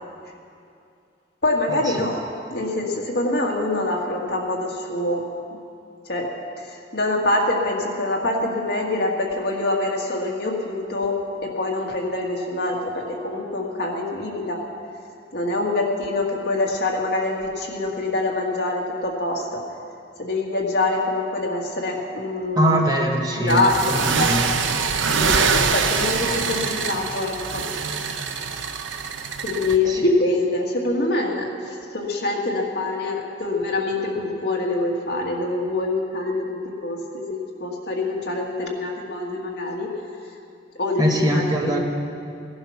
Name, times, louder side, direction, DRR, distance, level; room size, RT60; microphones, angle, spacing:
voice 1, 1.4-2.2 2.5-5.2 5.5-5.6 6.1-6.3 6.6-14.6 15.3-19.6 20.2-22.8 23.4-24.3 25.1-27.6 28.1-28.3 29.4-39.9 40.8-41.8, left 2 dB, 60° left, -1 dB, 1.9 m, -25 dB
voice 2, 22.6-23.6 23.9-24.5 29.9-30.0 41.0-41.8, equal, 20° right, 0 dB, 1.3 m, -22 dB
sound 1, 23.5-29.8, right 5 dB, 85° right, 0.8 m, -24 dB
17.0 x 11.0 x 5.9 m, 2.5 s
head